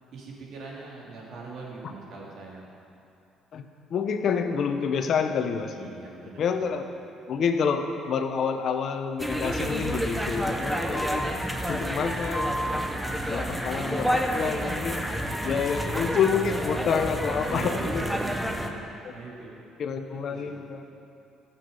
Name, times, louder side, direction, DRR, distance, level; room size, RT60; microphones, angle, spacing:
voice 1, 0.1-2.6 5.7-6.5 14.9-15.5 17.5-19.6 20.3-20.6, right 3 dB, 65° right, -3 dB, 2.7 m, -42 dB
voice 2, 3.5-6.0 6.4-6.8 7.3-11.3 11.7-12.7 13.3-15.1 15.4-18.1 19.8-20.8, left 6 dB, 55° left, 7 dB, 0.9 m, -28 dB
sound 1, 9.2-18.7, equal, ahead, 1.0 m, -29 dB
14.0 x 7.3 x 5.5 m, 2.8 s
supercardioid pair, 85°, 0 cm